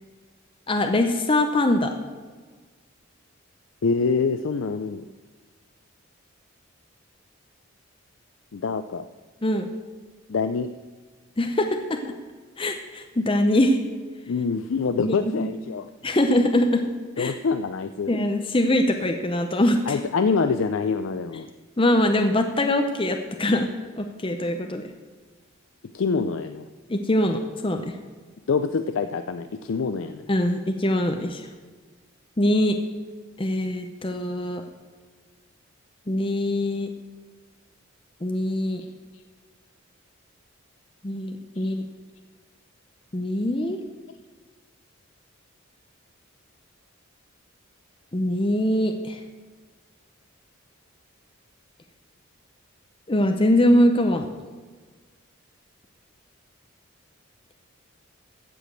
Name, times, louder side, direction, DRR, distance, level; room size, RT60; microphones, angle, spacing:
voice 1, 0.7-1.9 9.4-9.7 11.4-12.1 12.6-13.8 15.0-15.5 16.0-16.9 17.2-17.3 18.1-20.0 21.8-23.7 24.0-24.8 26.9-28.0 30.3-31.5 32.4-32.8 33.4-34.6 36.1-36.9 38.2-38.8 41.0-41.8 43.1-43.8 48.1-49.2 53.1-54.3, left 1 dB, 25° left, 5 dB, 0.7 m, -23 dB
voice 2, 3.8-5.0 8.5-9.0 10.3-10.7 14.3-15.9 17.2-18.1 19.9-21.5 25.9-26.7 28.5-30.3 41.6-41.7, left 5 dB, 70° left, 10 dB, 0.4 m, -25 dB
15.0 x 5.1 x 7.5 m, 1.4 s
head